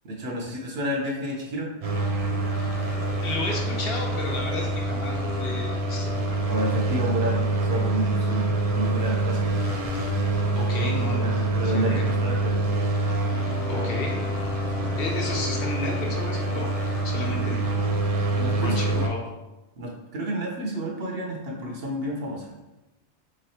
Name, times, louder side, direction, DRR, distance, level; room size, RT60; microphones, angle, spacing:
voice 1, 0.0-1.7 6.5-9.5 11.2-12.6 13.7-13.9 14.8-14.9 18.3-18.8 19.8-22.5, right 1 dB, 65° right, -1 dB, 0.9 m, -30 dB
sound 1, 1.8-19.1, right 2 dB, 40° right, 0.6 m, -26 dB
voice 2, 3.2-6.1 10.5-11.3 11.6-12.2 13.7-14.2 15.0-16.8 17.0-17.7 18.6-19.3, left 2 dB, 60° left, 0 dB, 1.0 m, -33 dB
Wind instrument woodwind instrument, 13.3-16.5, left 7 dB, 80° left, 0.9 m, -37 dB
3.4 x 3.2 x 4.2 m, 1.0 s
omnidirectional pair, 1.2 m